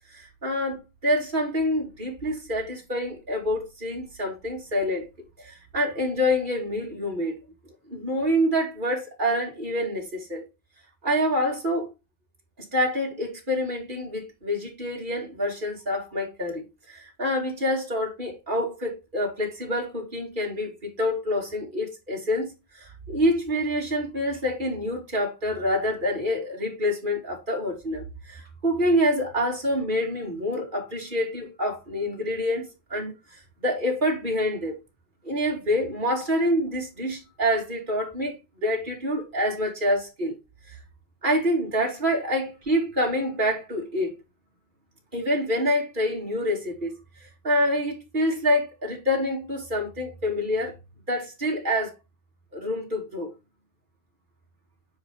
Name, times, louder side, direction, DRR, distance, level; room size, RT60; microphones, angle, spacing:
voice 1, 0.1-5.1 5.4-7.4 7.9-10.5 11.0-11.9 12.7-33.1 33.6-34.8 35.2-40.4 40.7-40.8 41.2-44.1 45.1-46.9 47.2-50.8 51.1-51.9 52.5-53.3, equal, 15° right, 2.1 m, -27 dB
9.4 x 5.1 x 3.9 m
omnidirectional pair, 5.1 m